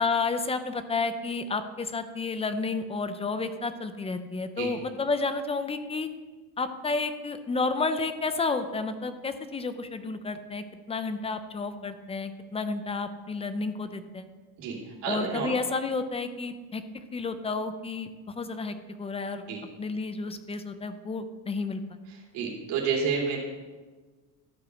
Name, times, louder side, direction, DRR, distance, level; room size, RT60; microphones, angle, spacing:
voice 1, 0.0-6.1 6.6-14.3 15.1-16.8 17.1-19.5 19.8-21.8, left 4 dB, 15° left, 10 dB, 0.5 m, -31 dB
voice 2, 15.0-15.5 19.5-19.6 22.3-23.4, right 6 dB, 75° right, -2 dB, 2.7 m, -29 dB
13.0 x 4.8 x 6.2 m, 1.4 s
cardioid pair, 135°, 40 cm